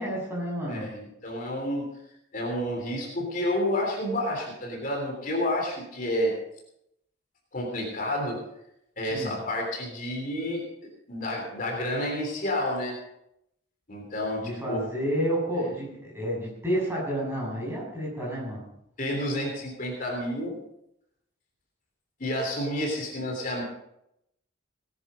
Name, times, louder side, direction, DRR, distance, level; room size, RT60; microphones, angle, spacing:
voice 1, 0.0-0.9 9.1-9.3 14.4-18.6, equal, 10° right, -4 dB, 6.7 m, -30 dB
voice 2, 0.7-1.9 2.3-6.3 7.5-8.4 9.0-10.6 11.1-12.9 13.9-14.8 19.0-20.6 22.2-23.6, left 1 dB, 45° left, 0 dB, 3.4 m, -30 dB
18.5 x 10.5 x 5.1 m, 0.79 s
head